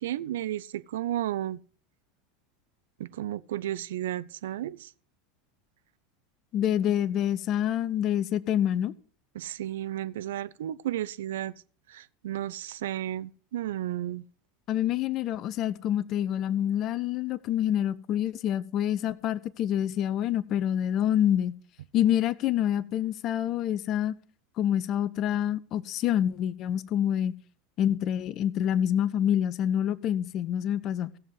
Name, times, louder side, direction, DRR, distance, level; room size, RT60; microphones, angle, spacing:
voice 1, 0.0-1.6 3.0-4.9 9.4-11.5 11.9-14.2, right 12 dB, 65° right, 0.5 m, -33 dB
voice 2, 6.5-8.9 14.7-21.5 21.9-24.1 24.6-27.3 27.8-31.1, left 10 dB, 40° left, 0.7 m, -27 dB
16.5 x 7.4 x 4.8 m
figure-of-eight pair, 80°, 0 cm